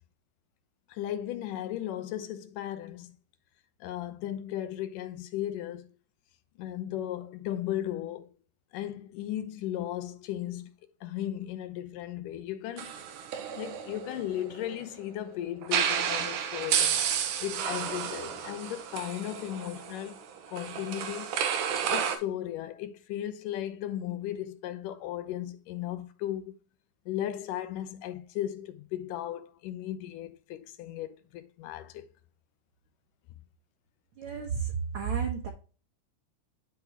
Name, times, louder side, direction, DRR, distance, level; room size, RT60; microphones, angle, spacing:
voice 1, 0.9-3.1 3.8-5.9 6.6-8.3 8.7-10.7 11.0-13.0 13.5-17.0 17.4-21.3 21.9-26.5 27.1-32.0, left 12 dB, 85° left, 2.4 m, -36 dB
sound 1, 12.8-14.8 15.6-22.2, right 8 dB, 85° right, 2.5 m, -31 dB
voice 2, 34.2-35.5, right 6 dB, 55° right, 1.6 m, -32 dB
11.5 x 3.9 x 2.9 m
omnidirectional pair, 3.7 m